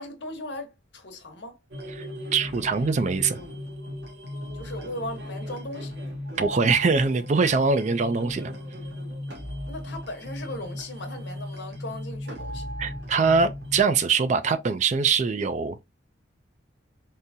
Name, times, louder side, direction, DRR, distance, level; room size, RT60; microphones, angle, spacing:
voice 1, 0.0-1.6 4.5-6.0 9.7-12.7, left 1 dB, 65° left, 1.0 m, -37 dB
sound 1, 1.7-13.8, left 1 dB, 60° right, 1.2 m, -36 dB
voice 2, 2.3-3.4 6.4-8.5 12.8-15.8, right 4 dB, 40° right, 0.4 m, -23 dB
3.7 x 2.7 x 2.7 m
head